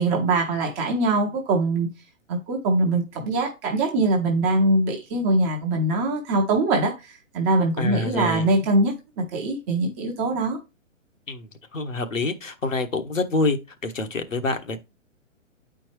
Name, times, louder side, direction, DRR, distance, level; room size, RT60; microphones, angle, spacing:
voice 1, 0.0-1.9 2.3-6.9 7.3-10.6, right 2 dB, 10° right, 0.6 m, -22 dB
voice 2, 7.8-8.5 11.3-14.8, left 3 dB, 70° left, 1.4 m, -27 dB
9.4 x 4.5 x 3.2 m
figure-of-eight pair, 125°, 40 cm